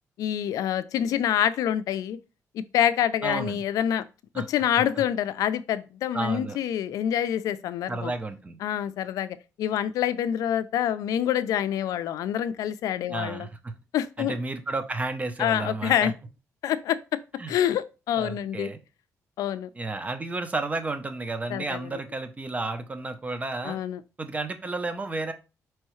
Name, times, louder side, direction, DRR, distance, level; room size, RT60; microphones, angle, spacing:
voice 1, 0.2-2.2 2.5-4.1 4.4-8.1 8.6-13.5 13.9-14.4 15.4-16.1 16.6-17.2 17.5-18.7 19.4-19.7 21.5-21.8 23.6-24.0, left 10 dB, 85° left, 0.4 m, -26 dB
voice 2, 3.2-3.6 4.3-4.5 6.1-6.6 7.9-8.6 13.1-13.7 14.2-16.1 17.4-17.6 18.2-18.8 19.7-23.8 24.2-25.3, right 3 dB, 25° right, 0.7 m, -32 dB
4.6 x 3.1 x 3.1 m
cardioid pair, 90°, 6 cm